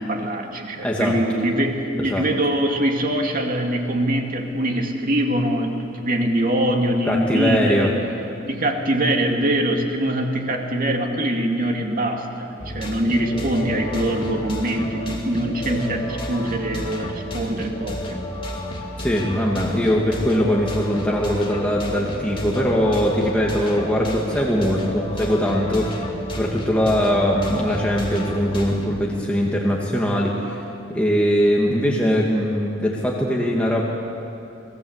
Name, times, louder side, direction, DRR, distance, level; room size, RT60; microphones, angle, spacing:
voice 1, 0.0-8.0 8.4-18.2, right 1 dB, 45° right, 2 dB, 2.5 m, -23 dB
voice 2, 0.8-1.1 2.0-2.2 7.1-7.9 19.0-25.9 26.3-30.6 30.9-33.8, equal, 5° left, -3 dB, 2.2 m, -21 dB
sound 1, 12.6-28.9, equal, 25° left, 2.7 m, -31 dB
28.0 x 19.5 x 8.2 m, 2.8 s
head